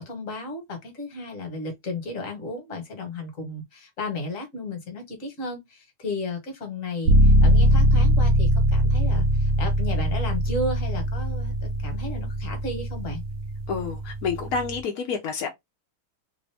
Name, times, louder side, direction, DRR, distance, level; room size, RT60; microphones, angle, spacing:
voice 1, 0.0-13.2, left 2 dB, 45° left, 1.4 m, -34 dB
sound 1, 7.0-14.8, equal, 65° right, 0.8 m, -21 dB
voice 2, 13.7-15.5, left 5 dB, 70° left, 0.9 m, -29 dB
3.3 x 2.5 x 3.3 m
omnidirectional pair, 2.2 m